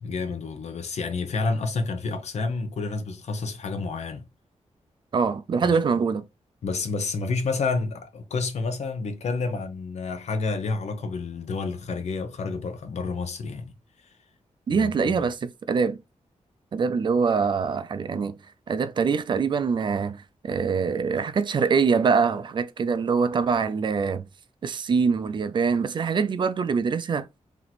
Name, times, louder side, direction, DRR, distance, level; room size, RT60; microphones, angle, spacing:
voice 1, 0.0-4.2 5.6-5.8 6.6-13.7 14.0-14.1 14.7-15.3, left 4 dB, 65° left, 0.9 m, -29 dB
voice 2, 5.1-6.2 14.7-16.0 16.7-18.3 18.7-24.3 24.6-27.3, right 5 dB, 40° right, 0.4 m, -24 dB
3.0 x 3.0 x 4.1 m
wide cardioid pair, 170°, 12 cm